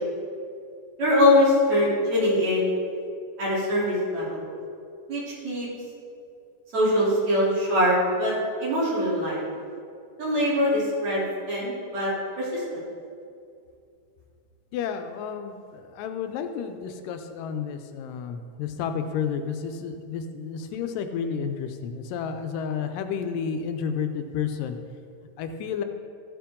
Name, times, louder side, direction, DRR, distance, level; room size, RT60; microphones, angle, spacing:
voice 1, 1.0-2.7 3.4-4.4 5.1-5.7 6.7-8.3 8.6-9.4 10.2-12.6, left 1 dB, 55° right, -8 dB, 4.4 m, -23 dB
voice 2, 14.7-24.8 25.4-25.8, left 7 dB, 80° left, 7 dB, 2.3 m, -31 dB
14.5 x 8.7 x 3.7 m, 2.5 s
omnidirectional pair, 3.9 m